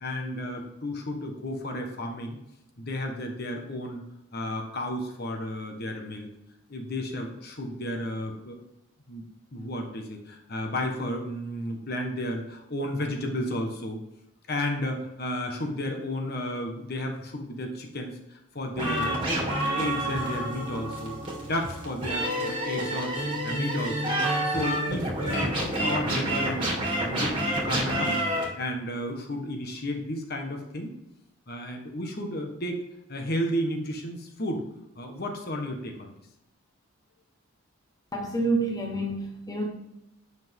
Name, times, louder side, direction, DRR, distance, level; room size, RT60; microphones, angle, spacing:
voice 1, 0.0-2.4 2.8-4.0 4.3-6.3 6.7-8.6 9.1-9.2 9.5-14.0 14.5-21.2 21.4-23.2 23.4-24.1 24.4-30.9 31.5-32.8 33.1-34.6 34.9-36.1, left 1 dB, 45° left, 3 dB, 1.3 m, -33 dB
sound 1, 18.8-28.4, right 1 dB, 25° right, 2.0 m, -28 dB
voice 2, 38.1-39.7, right 2 dB, 15° left, 0 dB, 1.1 m, -28 dB
10.0 x 6.0 x 3.7 m, 0.87 s
head